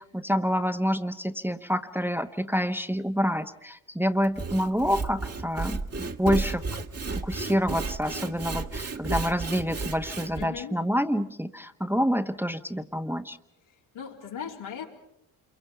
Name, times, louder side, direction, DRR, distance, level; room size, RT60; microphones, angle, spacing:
voice 1, 0.0-6.6 7.2-13.4, equal, 5° right, 7 dB, 1.2 m, -27 dB
Sawing / Wood, 4.2-10.4, right 3 dB, 30° right, 1.6 m, -33 dB
voice 2, 10.4-10.8 13.9-14.9, left 8 dB, 75° left, -1 dB, 3.8 m, -38 dB
28.0 x 23.5 x 5.7 m, 0.81 s
hypercardioid pair, 45°, 48 cm